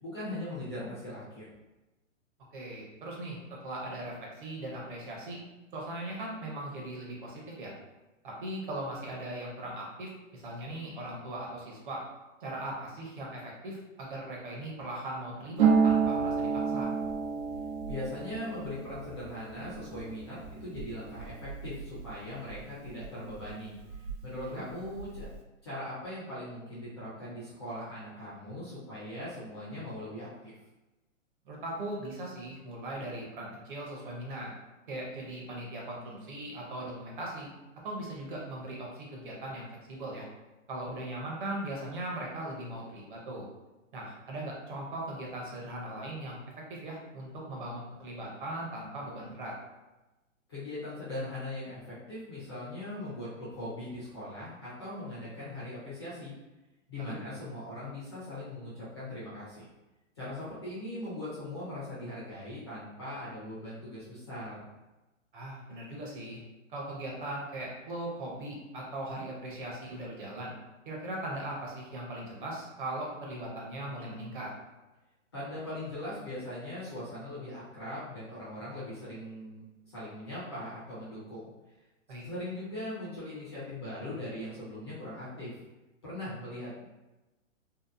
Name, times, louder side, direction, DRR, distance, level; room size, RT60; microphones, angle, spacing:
voice 1, 0.0-1.4 17.9-25.3 25.6-30.5 50.5-56.3 56.9-59.7 60.2-64.6 75.3-81.4 82.2-85.5 86.0-86.9, left 1 dB, 20° left, -10 dB, 0.4 m, -40 dB
voice 2, 2.5-3.4 3.6-5.4 5.7-7.7 8.2-12.0 12.4-16.9 24.4-24.7 31.5-34.5 34.9-37.5 37.8-40.2 40.7-43.5 43.9-46.4 46.7-49.5 57.0-57.2 65.3-66.4 66.7-70.5 70.8-74.5 82.1-82.2, right 1 dB, 40° right, -3 dB, 0.6 m, -39 dB
Harp, 15.6-23.1 23.3-24.4 24.7-25.3, right 6 dB, 80° right, 0.6 m, -31 dB
2.7 x 2.0 x 2.4 m, 1.0 s
hypercardioid pair, 155°, 39 cm